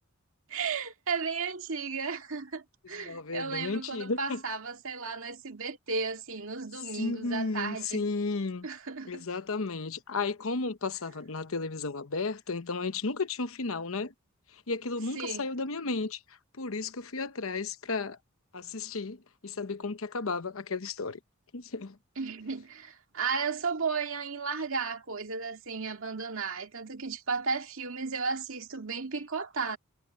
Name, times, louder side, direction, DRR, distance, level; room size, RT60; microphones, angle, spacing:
voice 1, 0.5-8.0 8.6-9.3 15.1-15.5 22.2-29.8, right 5 dB, 65° right, 2.2 m, -34 dB
voice 2, 3.0-4.4 6.9-8.7 9.0-14.1 14.7-16.2 16.6-18.2 18.5-21.2 21.5-22.0, left 3 dB, 70° left, 1.0 m, -33 dB
head